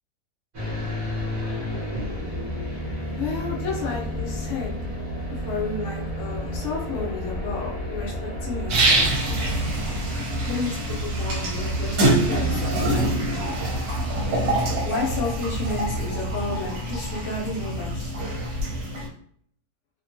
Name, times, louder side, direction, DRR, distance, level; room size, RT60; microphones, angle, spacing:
sound 1, 0.5-18.8, equal, 45° right, 0.9 m, -32 dB
voice 1, 3.2-4.7 5.3-8.1 8.4-9.2 10.5-13.6 14.8-18.1, left 4 dB, 55° left, -3 dB, 0.8 m, -32 dB
sound 2, 8.7-19.1, right 1 dB, 65° right, 1.1 m, -25 dB
2.8 x 2.2 x 2.5 m, 0.63 s
omnidirectional pair, 1.9 m